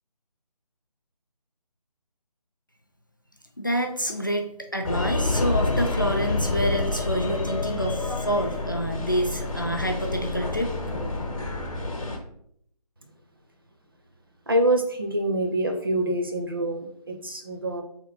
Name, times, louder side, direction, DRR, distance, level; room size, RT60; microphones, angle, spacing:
voice 1, 3.6-10.7, equal, 30° left, 3 dB, 0.3 m, -27 dB
sound 1, 4.8-12.2, left 2 dB, 55° left, 0.8 m, -28 dB
voice 2, 14.5-17.8, right 1 dB, 35° right, 4 dB, 0.5 m, -25 dB
3.8 x 3.6 x 3.6 m, 0.68 s
figure-of-eight pair, 160°, 21 cm